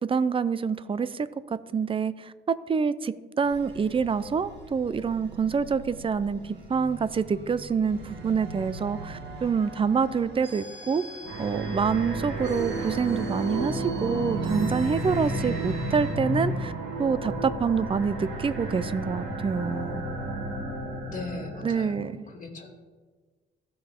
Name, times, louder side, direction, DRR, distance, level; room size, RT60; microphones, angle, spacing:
voice 1, 0.0-1.3 1.7-11.0 11.4-16.7 17.0-20.0 21.6-22.2, right 5 dB, 25° right, 16 dB, 0.5 m, -26 dB
sound 1, 3.4-16.2, right 2 dB, 60° right, 2.3 m, -44 dB
sound 2, 11.2-21.9, right 2 dB, 75° right, 2.4 m, -31 dB
voice 2, 21.1-22.7, left 3 dB, 40° left, 2 dB, 2.2 m, -38 dB
15.5 x 5.4 x 3.6 m, 1.4 s
cardioid pair, 90°, 20 cm